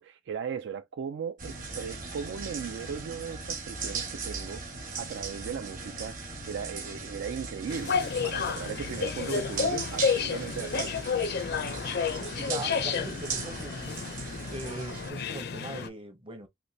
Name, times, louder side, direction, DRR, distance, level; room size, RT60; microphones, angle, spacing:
voice 1, 0.0-6.2 6.5-11.0, right 7 dB, 65° right, 0.3 m, -37 dB
sound 1, 1.4-15.1, right 4 dB, 45° right, 1.1 m, -38 dB
sound 2, 7.7-15.9, left 6 dB, 55° left, 0.5 m, -31 dB
voice 2, 12.1-14.1 14.5-16.5, right 2 dB, 30° right, 0.7 m, -40 dB
3.2 x 2.6 x 2.7 m
head